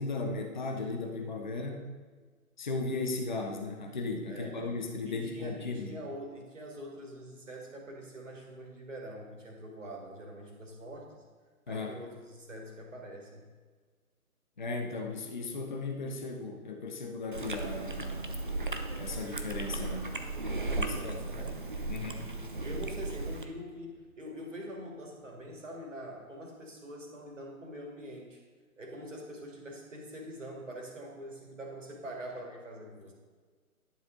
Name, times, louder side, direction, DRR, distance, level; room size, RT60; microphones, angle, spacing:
voice 1, 0.0-1.9 2.6-6.0 11.7-11.9 14.6-18.4 19.0-20.1 20.8-21.1 21.9-22.2, left 3 dB, 30° left, 3 dB, 0.8 m, -36 dB
voice 2, 4.3-4.8 5.0-11.2 11.7-13.5 20.7-21.6 21.9-28.4 28.8-33.1, equal, 55° right, 0 dB, 2.4 m, -44 dB
Chewing mastication, 17.3-23.4, right 2 dB, 35° right, 0.5 m, -36 dB
sound 1, 18.8-25.8, equal, ahead, 0.7 m, -54 dB
11.0 x 7.3 x 4.0 m, 1.5 s
figure-of-eight pair, 145°, 45 cm